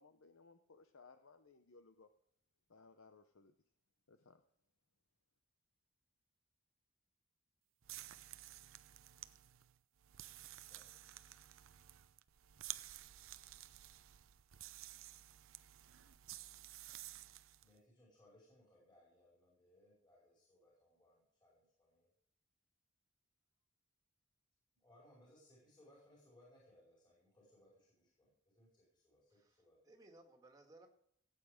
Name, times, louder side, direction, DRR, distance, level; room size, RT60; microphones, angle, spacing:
voice 1, 0.0-2.1 2.7-3.5 4.1-4.4, left 4 dB, 70° left, 8 dB, 0.8 m, -63 dB
sound 1, 7.8-17.7, right 14 dB, 70° right, 0.6 m, -53 dB
voice 2, 10.6-11.1 17.6-22.1 24.7-29.8, left 1 dB, 20° left, -5 dB, 5.0 m, -68 dB
voice 3, 29.3-30.9, right 2 dB, 15° right, 3 dB, 2.0 m, -62 dB
17.0 x 8.6 x 5.0 m, 0.69 s
head